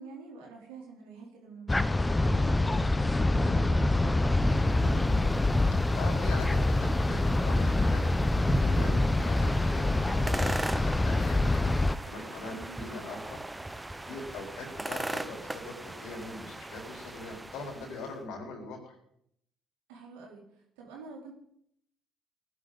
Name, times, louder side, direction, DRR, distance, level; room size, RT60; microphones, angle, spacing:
voice 1, 0.0-2.9 3.2-5.4 12.5-12.8 19.9-21.3, right 4 dB, 85° right, -1 dB, 3.7 m, -47 dB
sound 1, 1.7-12.0, left 2 dB, 15° left, 0.7 m, -26 dB
voice 2, 2.2-2.6 5.9-8.2 8.6-11.8 12.0-13.4 13.7-19.0, left 2 dB, 75° left, 1 dB, 4.3 m, -42 dB
sound 2, 4.1-18.1, right 2 dB, 15° right, 0.9 m, -39 dB
19.0 x 11.0 x 4.1 m, 0.70 s
hypercardioid pair, 55°, 0 cm